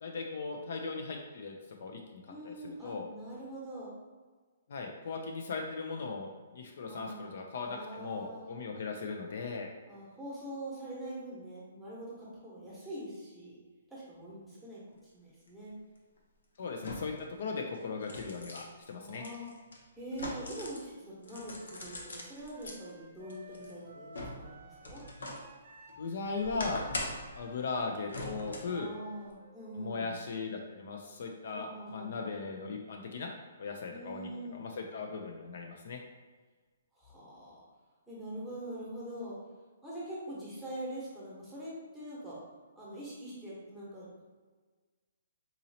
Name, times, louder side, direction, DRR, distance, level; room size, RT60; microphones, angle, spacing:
voice 1, 0.0-1.5 1.8-3.1 4.7-9.7 16.6-19.2 26.0-26.8 27.3-28.9 29.7-33.3 33.6-36.0, left 4 dB, 60° left, 2 dB, 0.4 m, -38 dB
voice 2, 2.3-3.9 6.9-7.4 7.6-8.4 9.9-13.6 13.9-15.7 19.0-19.5 20.0-24.1 24.4-25.0 28.7-30.2 31.5-32.3 33.9-34.6 36.9-37.6 38.1-39.4 39.8-42.4 42.8-44.2, right 1 dB, ahead, -8 dB, 1.0 m, -44 dB
sound 1, 15.5-15.6 16.8-17.3 17.7-20.9 21.2-22.8 23.3-25.5 25.9-27.4 28.1-28.8 29.2-29.3, left 1 dB, 90° left, 0.7 m, -42 dB
Wind instrument woodwind instrument, 21.2-31.0, equal, 40° right, 0.5 m, -55 dB
4.0 x 2.7 x 2.7 m, 1.4 s
hypercardioid pair, 165°, 0 cm